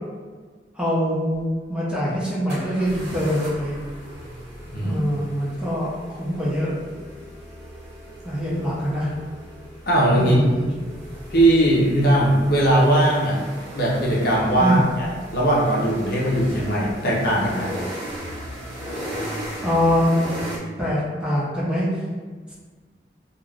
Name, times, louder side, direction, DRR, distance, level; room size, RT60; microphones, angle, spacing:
voice 1, 0.7-3.8 4.8-6.7 8.2-9.1 10.3-10.7 14.6-14.8 18.9-19.1 19.6-20.2 20.8-21.9, equal, 5° right, -8 dB, 0.6 m, -23 dB
sound 1, 1.3-1.4 2.5-20.6, equal, 75° right, 0.8 m, -37 dB
voice 2, 9.9-10.4 11.3-13.4 13.7-17.7, right 1 dB, 55° left, -5 dB, 0.7 m, -19 dB
2.4 x 2.4 x 3.2 m, 1.5 s
head